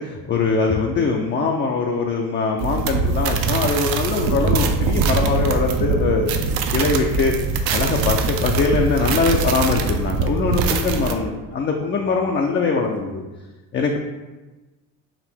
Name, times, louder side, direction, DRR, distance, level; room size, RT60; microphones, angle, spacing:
voice 1, 0.0-6.3 6.7-7.3 7.7-13.2 13.7-14.0, left 4 dB, 30° left, 1 dB, 0.4 m, -22 dB
sound 1, 2.6-11.1, right 4 dB, 60° right, 0.6 m, -22 dB
4.8 x 2.6 x 3.5 m, 1.2 s
supercardioid pair, 85°, 41 cm